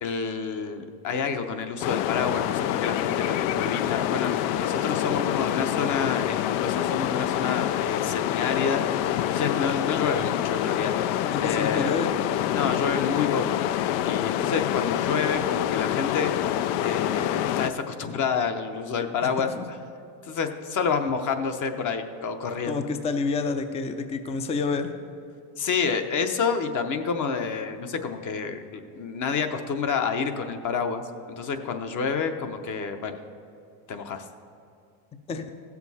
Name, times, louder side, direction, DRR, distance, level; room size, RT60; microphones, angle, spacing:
voice 1, 0.0-10.9 11.4-11.9 12.5-13.6 14.0-16.5 16.8-19.5 20.2-22.7 25.6-31.0 31.3-33.2 33.9-34.2, left 5 dB, 40° left, 7 dB, 0.9 m, -29 dB
sound 1, 1.8-17.7, left 12 dB, 75° left, 0.6 m, -26 dB
voice 2, 11.2-12.2 19.2-19.6 22.6-24.9 35.3-35.4, left 4 dB, 15° left, 8 dB, 0.4 m, -29 dB
16.0 x 7.0 x 4.1 m, 2.5 s
supercardioid pair, 115°, 48 cm